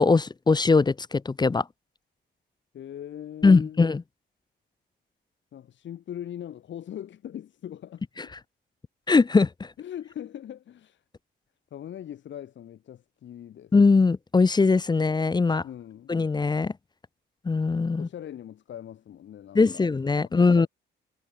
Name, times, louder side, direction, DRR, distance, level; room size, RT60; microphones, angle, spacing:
voice 1, 0.0-1.6 3.4-4.0 9.1-9.7 13.7-15.6 16.1-16.7 17.4-18.1 19.5-20.7, left 4 dB, 20° left, 0.7 m, -21 dB
voice 2, 2.7-3.8 5.5-8.3 9.8-11.0 11.7-13.7 15.6-16.1 18.0-19.9 20.4-20.7, left 10 dB, 70° left, 7.5 m, -41 dB
cardioid pair, 90°, 20 cm